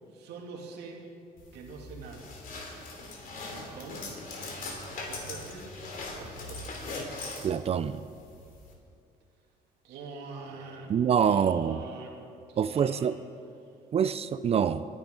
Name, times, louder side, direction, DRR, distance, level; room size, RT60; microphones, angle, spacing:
voice 1, 0.1-1.0 1.5-2.3 3.5-4.1 4.9-5.7 6.1-7.0 9.8-10.9 11.2-12.2 12.5-13.1, right 4 dB, 80° right, 0 dB, 2.5 m, -44 dB
sound 1, 1.4-8.7, left 2 dB, 55° left, 2.8 m, -41 dB
voice 2, 7.4-8.0 10.9-11.8 12.6-13.2 13.9-14.8, right 8 dB, 35° right, 14 dB, 0.4 m, -25 dB
24.0 x 10.5 x 3.8 m, 2.6 s
cardioid pair, 110°, 17 cm